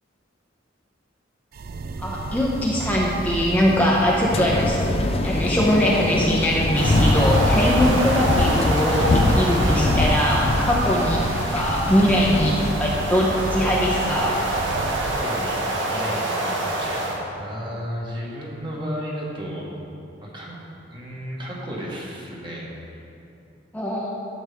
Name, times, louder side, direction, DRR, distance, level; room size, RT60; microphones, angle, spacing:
sound 1, 1.5-15.2, right 3 dB, 55° right, 0.4 m, -32 dB
voice 1, 2.0-4.8 5.2-11.3 11.5-14.3 23.7-24.1, left 1 dB, 10° left, -4 dB, 0.8 m, -21 dB
sound 2, 4.3-12.7, left 2 dB, 35° left, 0.4 m, -23 dB
sound 3, 6.8-17.2, right 1 dB, 90° right, 1.3 m, -27 dB
voice 2, 14.9-19.7 20.2-20.5 20.9-23.0, equal, 25° right, -4 dB, 1.6 m, -34 dB
11.0 x 8.0 x 3.5 m, 2.8 s
head